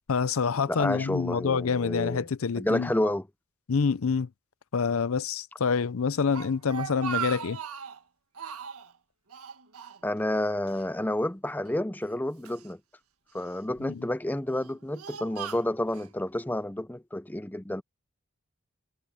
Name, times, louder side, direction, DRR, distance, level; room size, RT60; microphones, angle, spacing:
voice 1, 0.1-2.9 3.7-4.3 4.7-7.6 13.9-14.1, left 5 dB, 70° left, 0.5 m, -27 dB
voice 2, 0.7-2.2 2.6-3.3 10.0-12.8 13.3-17.8, left 1 dB, 10° left, 0.5 m, -30 dB
Speech, 6.1-8.0 8.4-8.9 9.3-10.4 10.7-10.8 11.7-12.7 13.4-13.8 14.4-16.1, right 8 dB, 85° right, 1.7 m, -38 dB
head